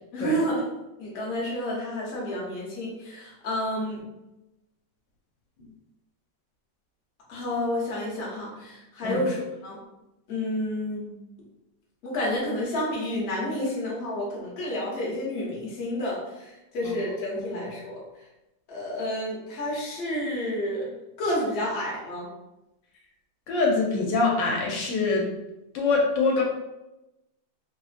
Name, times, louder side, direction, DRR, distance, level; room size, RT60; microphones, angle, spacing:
voice 1, 0.1-0.6 1.0-4.0 7.3-9.8 10.3-11.1 12.0-18.0 18.7-20.9 21.2-22.3, left 1 dB, 45° left, -4 dB, 0.9 m, -30 dB
voice 2, 17.4-17.7 23.5-25.3 25.7-26.4, left 3 dB, 80° left, -2 dB, 1.3 m, -24 dB
3.1 x 2.4 x 2.4 m, 0.95 s
omnidirectional pair, 2.0 m